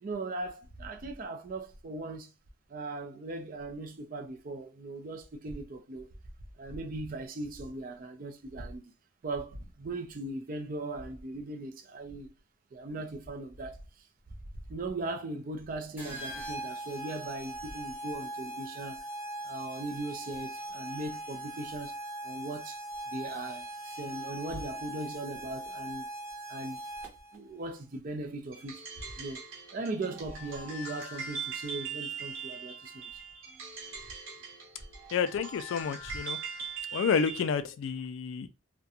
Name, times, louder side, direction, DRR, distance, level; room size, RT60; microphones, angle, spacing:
voice 1, 0.0-2.3 2.7-6.1 6.6-8.8 9.2-12.3 12.7-14.1 14.7-19.1 19.4-21.9 22.2-22.8 23.1-26.1 26.5-26.8 27.3-28.9 29.2-29.5 29.7-33.2, right 2 dB, 40° right, 0.4 m, -39 dB
sound 1, 16.0-27.4, right 1 dB, 10° right, 0.7 m, -40 dB
sound 2, 28.5-37.5, right 5 dB, 75° right, 0.9 m, -41 dB
voice 2, 35.1-36.4 36.9-38.5, left 6 dB, 70° left, 0.3 m, -30 dB
2.4 x 2.1 x 2.7 m
head